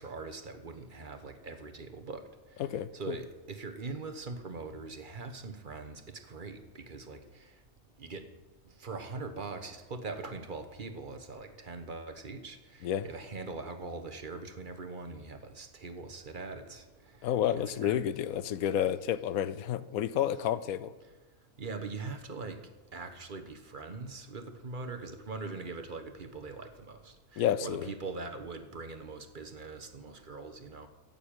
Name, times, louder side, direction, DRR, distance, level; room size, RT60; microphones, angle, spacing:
voice 1, 0.0-2.6 2.9-7.6 8.0-8.3 8.6-17.3 17.8-18.0 21.6-22.6 22.9-30.9, right 3 dB, 35° right, 1.3 m, -42 dB
voice 2, 2.6-3.2 12.8-13.1 17.2-20.9 27.4-27.9, left 10 dB, 80° left, 1.1 m, -30 dB
14.5 x 7.0 x 8.9 m
omnidirectional pair, 1.5 m